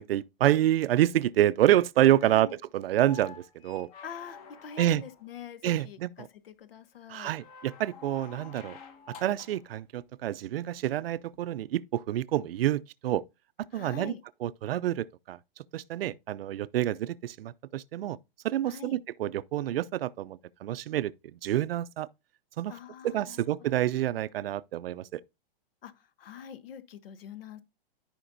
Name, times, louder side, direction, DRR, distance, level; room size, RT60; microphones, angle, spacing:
voice 1, 0.0-3.9 4.8-5.0 5.6-6.3 7.1-8.8 9.2-13.2 13.7-14.1 14.4-15.4 15.7-18.2 18.4-21.1 21.4-22.1 22.6-22.7 23.0-25.2, right 13 dB, 80° right, 0.5 m, -27 dB
voice 2, 2.2-2.6 4.0-7.3 13.7-14.2 18.7-19.0 22.7-23.4 25.8-27.6, left 7 dB, 75° left, 1.0 m, -44 dB
sound 1, 2.8-5.4 7.2-9.7 11.3-11.4, left 6 dB, 40° left, 1.3 m, -49 dB
13.0 x 5.1 x 2.6 m
hypercardioid pair, 165°, 29 cm